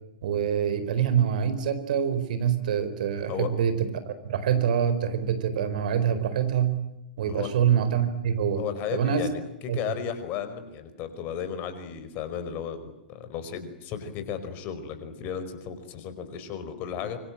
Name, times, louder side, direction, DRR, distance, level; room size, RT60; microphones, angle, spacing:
voice 1, 0.2-6.8 7.2-8.6 8.9-9.3 9.7-9.8, right 8 dB, 60° right, 11 dB, 4.6 m, -25 dB
voice 2, 8.6-17.2, left 8 dB, 35° left, 10 dB, 5.1 m, -34 dB
26.0 x 24.5 x 9.0 m, 0.89 s
figure-of-eight pair, 105°, 5 cm